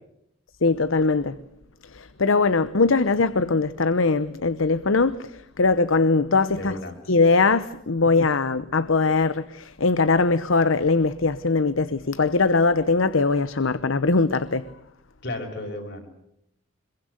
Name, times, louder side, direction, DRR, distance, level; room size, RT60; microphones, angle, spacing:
voice 1, 0.6-1.4 1.9-6.8 7.1-14.7, left 3 dB, 85° left, 0.9 m, -21 dB
voice 2, 6.5-7.0 15.2-16.1, left 1 dB, 60° left, 5.9 m, -33 dB
26.0 x 22.5 x 8.2 m
head